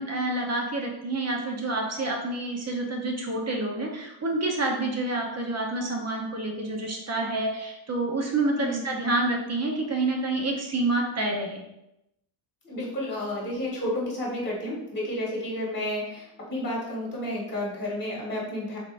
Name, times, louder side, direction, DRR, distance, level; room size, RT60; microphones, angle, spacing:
voice 1, 0.0-11.6, right 2 dB, 35° right, 1 dB, 0.8 m, -28 dB
voice 2, 12.6-18.8, left 1 dB, 20° left, -4 dB, 1.5 m, -31 dB
3.6 x 3.5 x 2.5 m, 0.87 s
cardioid pair, 105°, 47 cm